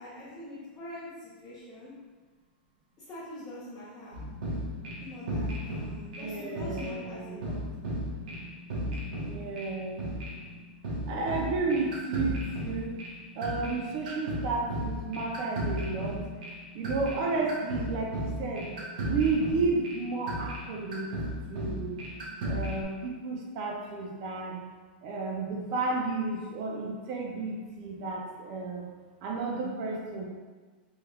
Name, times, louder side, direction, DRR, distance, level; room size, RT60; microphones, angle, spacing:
voice 1, 0.0-1.9 3.0-4.1 5.0-7.6, left 1 dB, 15° left, -10 dB, 0.6 m, -44 dB
sound 1, 4.1-22.8, equal, 55° right, 1.0 m, -36 dB
voice 2, 6.2-7.4 9.2-10.1 11.1-13.0 13.4-16.3 16.7-18.7 19.0-21.1 21.5-22.0 22.4-24.7 25.0-28.9 29.2-30.3, right 3 dB, 30° right, -1 dB, 0.5 m, -32 dB
3.5 x 3.1 x 2.3 m, 1.4 s
supercardioid pair, 180°, 5 cm